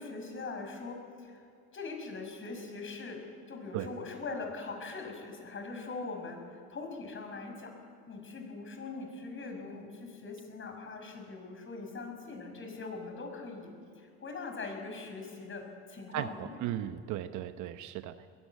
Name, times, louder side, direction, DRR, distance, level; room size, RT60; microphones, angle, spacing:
voice 1, 0.0-1.4 1.7-7.7 8.1-16.6, left 3 dB, 40° left, 4 dB, 6.1 m, -42 dB
voice 2, 16.1-18.3, right 12 dB, 65° right, 10 dB, 1.0 m, -36 dB
21.0 x 14.5 x 9.6 m, 2.3 s
hypercardioid pair, 75°, 31 cm